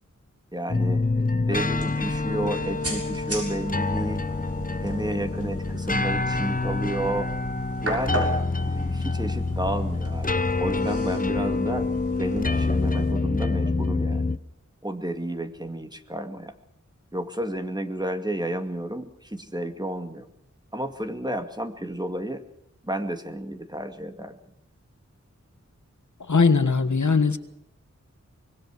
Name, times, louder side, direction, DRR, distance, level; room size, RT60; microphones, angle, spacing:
voice 1, 0.5-4.3 4.8-7.3 7.8-11.9 12.2-14.4 14.8-16.5 17.1-20.3 20.7-22.4 22.8-24.4, right 1 dB, 15° right, 6 dB, 2.3 m, -31 dB
sound 1, 0.7-14.4, left 3 dB, 30° left, 0.9 m, -26 dB
sound 2, 1.7-13.1, right 1 dB, 55° right, 6.8 m, -37 dB
voice 2, 26.3-27.4, left 4 dB, 75° left, 10 dB, 1.6 m, -20 dB
25.0 x 21.5 x 6.3 m, 0.77 s
wide cardioid pair, 65°, 29 cm